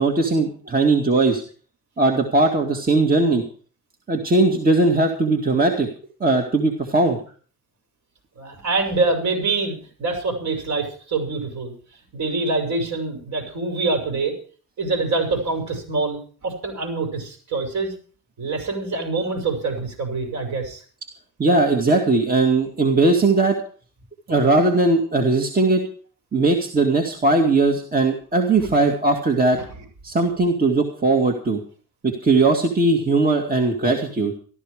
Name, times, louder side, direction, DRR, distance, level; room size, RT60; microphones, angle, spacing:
voice 1, 0.0-1.4 2.0-3.4 4.1-5.9 6.2-7.2 21.4-23.6 24.3-25.8 26.3-29.6 30.0-31.6 32.0-34.3, right 3 dB, 25° right, 2 dB, 2.2 m, -19 dB
voice 2, 8.4-11.7 12.1-14.3 14.8-17.9 18.4-20.8 28.6-28.7 29.6-29.7, right 3 dB, 60° right, 4 dB, 6.1 m, -25 dB
14.0 x 13.5 x 5.0 m, 0.42 s
cardioid pair, 110°, 33 cm